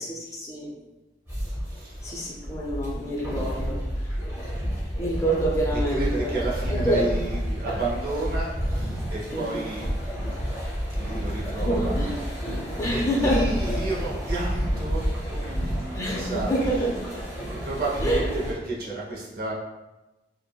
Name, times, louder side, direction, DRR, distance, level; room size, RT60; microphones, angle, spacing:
voice 1, 0.3-0.7 2.0-3.8 5.0-6.3 6.8-7.0 9.3-9.6 11.6-12.2 12.8-13.8 15.9-16.9 17.4-17.5 18.0-18.2, right 1 dB, 15° left, -3 dB, 0.4 m, -27 dB
sound 1, 1.3-18.5, equal, 15° right, 0.8 m, -30 dB
voice 2, 1.7-2.2 5.7-9.9 10.9-12.4 12.9-17.0 17.6-19.5, right 2 dB, 55° right, -5 dB, 0.7 m, -32 dB
3.6 x 2.0 x 2.2 m, 1.1 s
head